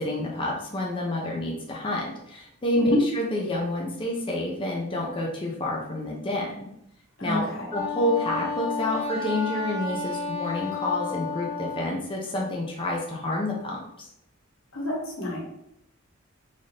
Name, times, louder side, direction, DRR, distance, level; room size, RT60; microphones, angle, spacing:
voice 1, 0.0-6.5 7.2-14.1, left 1 dB, 25° left, -2 dB, 0.6 m, -29 dB
voice 2, 7.2-7.7 14.7-15.4, left 1 dB, 85° left, -3 dB, 1.4 m, -27 dB
Wind instrument woodwind instrument, 7.7-11.9, left 4 dB, 15° right, 1.3 m, -31 dB
4.0 x 2.6 x 3.3 m, 0.76 s
head